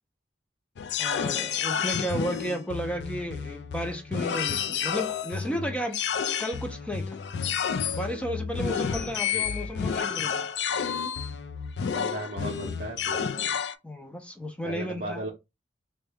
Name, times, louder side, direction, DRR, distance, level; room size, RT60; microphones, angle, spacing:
sound 1, 0.8-13.7, left 7 dB, 70° left, 0.3 m, -30 dB
voice 1, 1.0-6.0 6.4-7.2 7.9-10.5 13.8-15.3, equal, 5° left, 0.5 m, -33 dB
voice 2, 11.9-13.3 14.6-15.3, right 1 dB, 50° right, 0.6 m, -36 dB
3.5 x 2.1 x 3.4 m
head